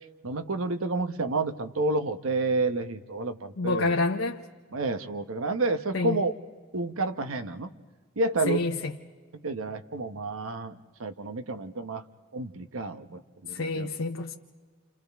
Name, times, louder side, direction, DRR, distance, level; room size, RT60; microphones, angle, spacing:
voice 1, 0.2-3.9 4.7-6.3 6.7-7.7 8.2-8.6 9.3-12.0 12.3-13.9, right 2 dB, 85° right, 0.9 m, -30 dB
voice 2, 3.6-4.4 5.9-6.2 8.5-8.9 13.5-14.3, left 3 dB, 75° left, 0.7 m, -28 dB
29.0 x 28.5 x 3.5 m
head